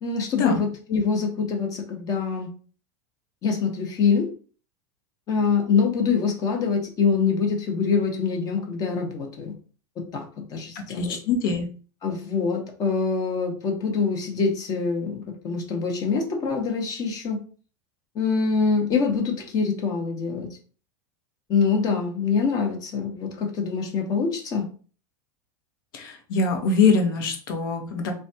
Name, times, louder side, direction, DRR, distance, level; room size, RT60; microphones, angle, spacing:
voice 1, 0.0-2.5 3.4-4.3 5.3-9.5 10.0-11.2 12.0-17.4 18.1-20.5 21.5-24.7, left 5 dB, 30° left, 2 dB, 0.8 m, -25 dB
voice 2, 10.9-11.7 25.9-28.1, left 4 dB, 75° left, 4 dB, 0.8 m, -23 dB
3.2 x 2.3 x 2.6 m, 0.40 s
supercardioid pair, 135°, 12 cm